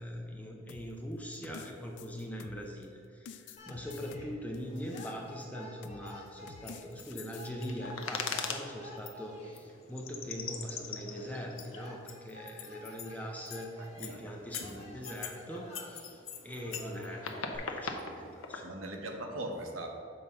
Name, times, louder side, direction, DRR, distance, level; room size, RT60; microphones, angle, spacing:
voice 1, 0.0-18.7, equal, 5° left, 0 dB, 0.6 m, -42 dB
sound 1, 0.7-2.8 3.3-5.4 5.8-6.1 6.5-7.5, left 6 dB, 60° left, 0.3 m, -50 dB
sound 2, 3.6-17.6, equal, 30° left, 1.2 m, -51 dB
sound 3, 6.1-6.2 6.7-8.6 9.1-9.2 9.6-9.7 10.0-13.1 13.5-13.7 14.0-14.2 14.5-15.4 15.7-18.6, left 6 dB, 85° left, 0.7 m, -40 dB
voice 2, 13.8-14.2 14.6-14.7 18.1-18.2 18.6-19.9, right 1 dB, 85° right, 2 dB, 1.0 m, -40 dB
7.0 x 4.0 x 5.5 m, 2.6 s
head